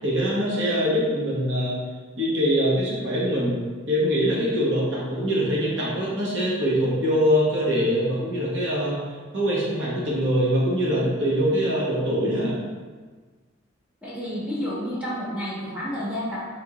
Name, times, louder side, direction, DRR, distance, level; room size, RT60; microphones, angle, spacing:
voice 1, 0.0-1.8 2.2-3.6 3.9-9.0 9.3-12.5, equal, 65° right, -6 dB, 1.2 m, -23 dB
voice 2, 14.0-16.4, equal, 5° right, -8 dB, 1.1 m, -30 dB
3.8 x 3.5 x 2.9 m, 1.4 s
head